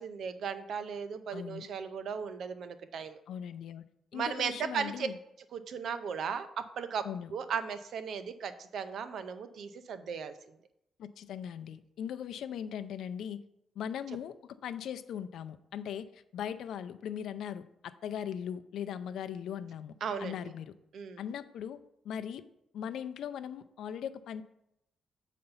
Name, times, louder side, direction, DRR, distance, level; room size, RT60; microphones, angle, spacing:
voice 1, 0.0-3.2 4.1-5.1 5.5-7.0 7.3-10.3 20.0-20.5 20.9-21.2, right 6 dB, 65° right, 11 dB, 0.6 m, -36 dB
voice 2, 1.3-1.7 3.3-3.8 4.1-5.2 7.0-7.3 11.0-13.4 13.8-19.9 20.2-20.7 21.2-21.8 22.0-22.4 22.7-24.4, left 9 dB, 80° left, 11 dB, 0.4 m, -39 dB
7.8 x 4.2 x 5.5 m, 0.81 s
cardioid pair, 130°, 0 cm